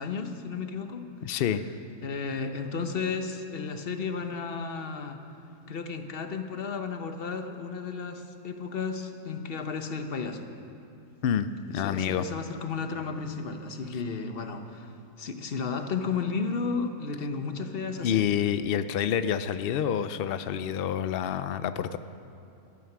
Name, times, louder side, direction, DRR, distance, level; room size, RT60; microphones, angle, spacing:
voice 1, 0.0-1.1 2.0-5.2 5.7-10.5 11.7-18.2, left 5 dB, 45° left, 6 dB, 1.0 m, -33 dB
voice 2, 1.2-1.6 11.2-12.3 18.0-22.0, left 9 dB, 90° left, 12 dB, 0.5 m, -28 dB
15.5 x 12.5 x 6.0 m, 2.7 s
omnidirectional pair, 1.6 m